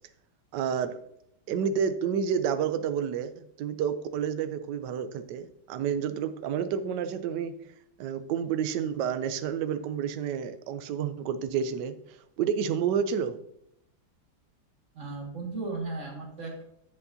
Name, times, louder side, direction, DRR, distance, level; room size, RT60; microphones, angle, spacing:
voice 1, 0.5-1.0 1.5-7.6 8.0-12.0 12.4-13.4, right 7 dB, 70° right, 11 dB, 1.2 m, -29 dB
voice 2, 14.9-16.6, right 3 dB, 40° right, -1 dB, 2.2 m, -36 dB
9.4 x 8.2 x 2.8 m, 0.74 s
omnidirectional pair, 2.1 m